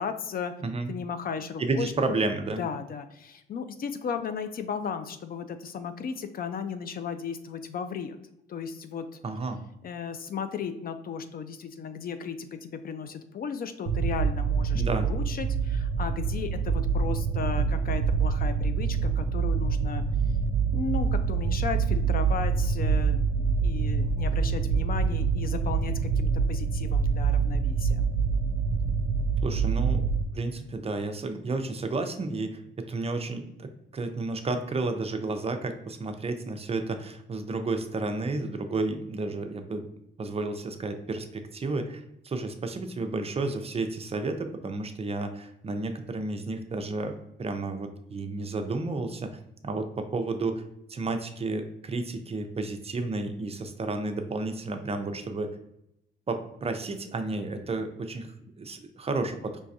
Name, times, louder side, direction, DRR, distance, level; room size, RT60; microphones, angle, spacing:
voice 1, 0.0-0.5 0.9-2.2 2.6-8.2 8.5-9.1 9.8-20.0 20.7-28.1, left 6 dB, 50° left, 9 dB, 0.4 m, -35 dB
voice 2, 0.6-0.9 1.6-2.7 9.2-9.6 14.7-15.1 29.4-30.1 30.3-39.9 40.2-47.1 47.4-50.6 50.9-55.5 56.3-59.6, right 3 dB, 30° right, 7 dB, 0.5 m, -32 dB
sound 1, 13.9-30.2, right 5 dB, 80° right, 0.5 m, -26 dB
4.6 x 3.3 x 2.7 m, 0.82 s
cardioid pair, 90°, 20 cm